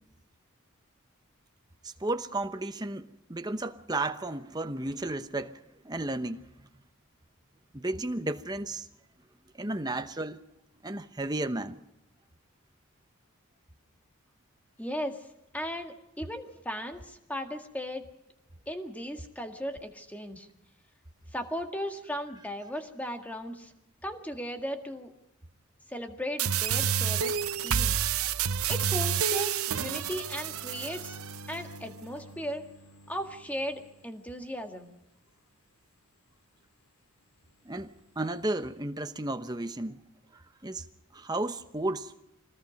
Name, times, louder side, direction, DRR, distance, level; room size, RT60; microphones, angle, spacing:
voice 1, 1.8-5.6 5.8-6.4 7.7-8.9 9.6-10.4 10.8-11.8 37.6-40.0 40.6-40.9 41.1-42.1, right 2 dB, 20° right, 0.9 m, -33 dB
voice 2, 14.8-15.3 15.5-18.0 18.7-20.5 21.3-23.7 24.0-25.1 25.9-27.3 27.6-28.0 28.7-31.2 31.5-32.6 33.1-34.9, equal, 5° left, 1.8 m, -37 dB
sound 1, 26.4-31.4, right 8 dB, 75° right, 0.8 m, -29 dB
sound 2, 30.1-34.8 38.0-38.6, right 1 dB, 70° left, 4.3 m, -50 dB
26.0 x 19.5 x 5.3 m
head